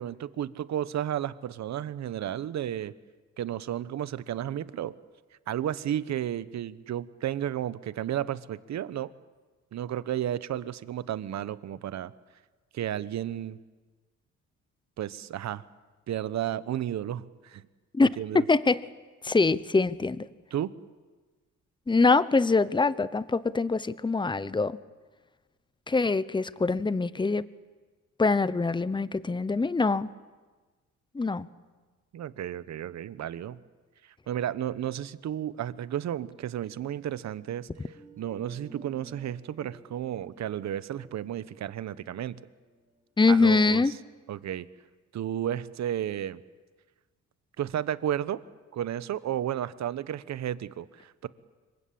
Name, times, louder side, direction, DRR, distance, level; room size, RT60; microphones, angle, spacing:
voice 1, 0.0-2.9 3.4-5.0 5.5-9.1 9.7-12.1 12.7-13.6 15.0-15.6 16.1-17.6 18.0-18.4 20.5-20.7 32.1-33.6 34.3-42.4 43.3-43.9 44.3-44.7 45.1-46.4 47.6-48.4 48.7-51.3, right 11 dB, 65° right, 15 dB, 1.1 m, -33 dB
voice 2, 17.9-18.8 19.2-20.3 21.9-24.8 25.9-27.4 28.2-30.1 31.1-31.5 43.2-43.9, left 3 dB, 15° left, 16 dB, 0.9 m, -24 dB
sound 1, 37.7-43.5, right 1 dB, 25° right, 7.1 m, -54 dB
26.0 x 23.0 x 8.6 m, 1.3 s
cardioid pair, 90°, 30 cm